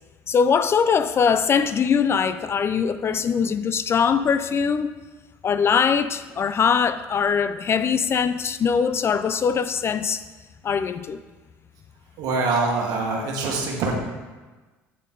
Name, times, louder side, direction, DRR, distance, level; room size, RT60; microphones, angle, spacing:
voice 1, 0.3-4.9 5.4-10.2 10.6-11.2, left 6 dB, 40° left, 12 dB, 0.3 m, -22 dB
voice 2, 12.2-13.9, right 3 dB, 65° right, 1 dB, 1.3 m, -24 dB
8.4 x 4.1 x 3.7 m, 1.3 s
hypercardioid pair, 70°, 7 cm